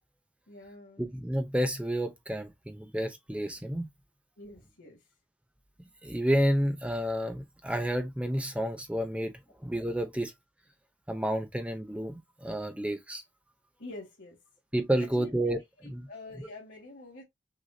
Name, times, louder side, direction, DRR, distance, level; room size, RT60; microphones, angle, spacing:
voice 1, 0.5-1.0 4.4-5.0 5.8-5.9 13.8-14.4 15.0-15.3 15.8-17.2, left 2 dB, 65° left, 1.8 m, -46 dB
voice 2, 1.0-3.9 5.8-9.3 9.6-10.3 11.1-13.2 14.7-16.1, equal, 5° right, 0.7 m, -30 dB
6.4 x 2.3 x 2.7 m
head